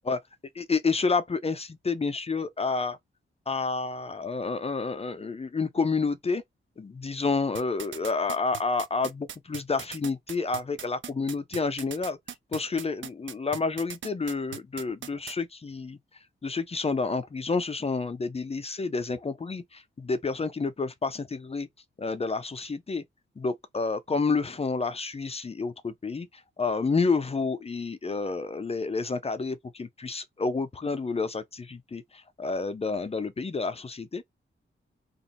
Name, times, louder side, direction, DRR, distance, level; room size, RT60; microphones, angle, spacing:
voice 1, 0.5-3.0 3.5-6.4 6.8-12.2 12.5-16.0 16.4-21.7 22.0-23.0 23.4-34.2, left 4 dB, 30° left, 0.5 m, -29 dB
sound 1, 7.6-15.3, right 8 dB, 65° right, 0.5 m, -39 dB
2.9 x 2.4 x 4.1 m
wide cardioid pair, 115°, 21 cm